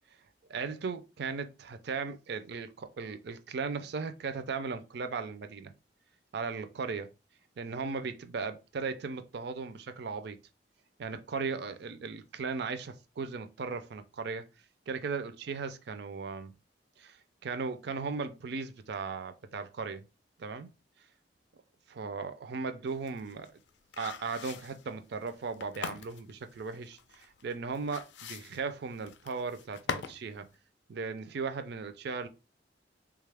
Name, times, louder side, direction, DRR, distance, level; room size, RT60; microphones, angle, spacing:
voice 1, 0.5-5.7 6.3-7.1 7.6-10.4 11.0-14.5 14.9-16.5 17.0-17.2 17.4-20.0 20.4-20.7 21.9-23.5 24.0-30.5 30.9-32.3, right 4 dB, 65° right, 0.4 m, -37 dB
sound 1, 22.9-30.2 30.5-30.6, left 6 dB, 75° left, 0.4 m, -42 dB
3.6 x 2.3 x 3.3 m
head